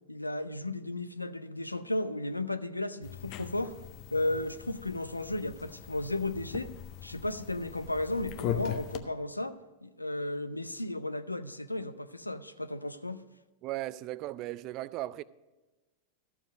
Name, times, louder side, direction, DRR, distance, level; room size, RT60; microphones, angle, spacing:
voice 1, 0.1-3.8 4.1-6.7 7.0-13.2, left 2 dB, 85° left, 0.4 m, -34 dB
sound 1, 3.0-9.0, left 11 dB, 40° left, 0.6 m, -40 dB
voice 2, 13.6-15.2, right 16 dB, 40° right, 0.3 m, -37 dB
13.0 x 7.1 x 5.2 m
figure-of-eight pair, 90°, 0 cm